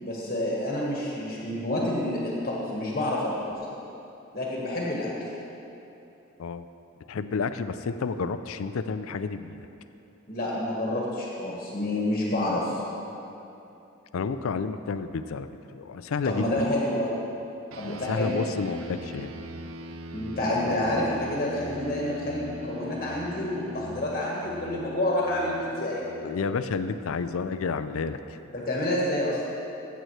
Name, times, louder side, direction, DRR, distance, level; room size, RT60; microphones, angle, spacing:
voice 1, 0.0-3.5 4.3-5.3 10.3-12.8 16.2-17.2 17.7-18.4 20.1-26.0 28.5-29.4, left 1 dB, 40° left, -4 dB, 1.4 m, -28 dB
voice 2, 7.1-9.7 14.1-16.5 17.8-19.3 20.6-20.8 26.2-28.4, left 5 dB, 75° left, 11 dB, 0.4 m, -30 dB
sound 1, 17.7-27.4, left 1 dB, 75° right, 0.6 m, -41 dB
15.0 x 8.0 x 3.2 m, 2.9 s
head